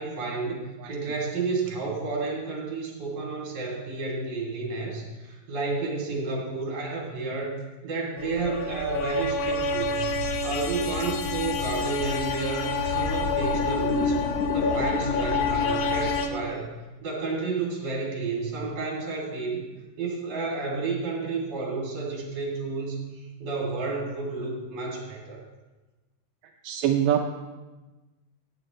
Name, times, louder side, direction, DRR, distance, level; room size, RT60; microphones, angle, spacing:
voice 1, 0.0-7.6 7.8-10.1 10.4-14.2 14.5-16.7 17.0-19.6 20.0-25.4, right 3 dB, 50° right, -2 dB, 3.8 m, -31 dB
sound 1, 8.2-16.3, left 4 dB, 70° left, 1.5 m, -27 dB
voice 2, 26.6-27.3, right 10 dB, 85° right, 3 dB, 2.2 m, -25 dB
17.5 x 9.4 x 3.1 m, 1.2 s
omnidirectional pair, 3.8 m